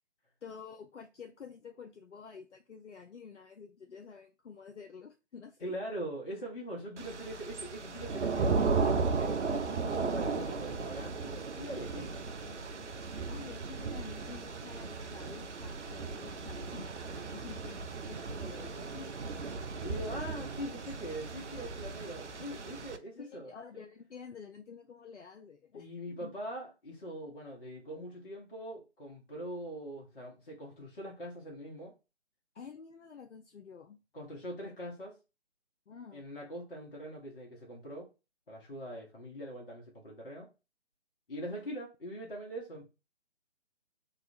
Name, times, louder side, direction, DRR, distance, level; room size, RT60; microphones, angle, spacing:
voice 1, 0.4-5.7 11.7-12.9 13.3-19.1 23.1-26.3 32.5-34.0 35.9-36.2, left 6 dB, 85° left, 0.5 m, -49 dB
voice 2, 5.6-12.0 19.7-23.6 25.7-31.9 34.1-35.2 36.1-38.1 38.5-40.5 41.3-42.8, equal, 50° left, 1.1 m, -42 dB
Thunder / Rain, 7.0-23.0, right 4 dB, 90° right, 0.5 m, -35 dB
2.9 x 2.4 x 2.7 m
figure-of-eight pair, 145°, 34 cm